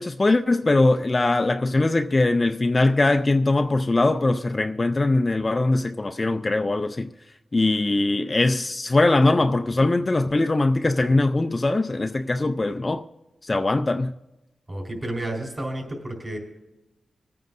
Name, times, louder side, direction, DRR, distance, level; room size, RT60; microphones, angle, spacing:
voice 1, 0.0-7.1 7.5-13.0 13.4-14.1, left 2 dB, 30° left, 0.4 m, -21 dB
voice 2, 14.7-16.4, right 1 dB, 25° right, 3.9 m, -31 dB
25.0 x 9.1 x 2.6 m
wide cardioid pair, 90°, 0 cm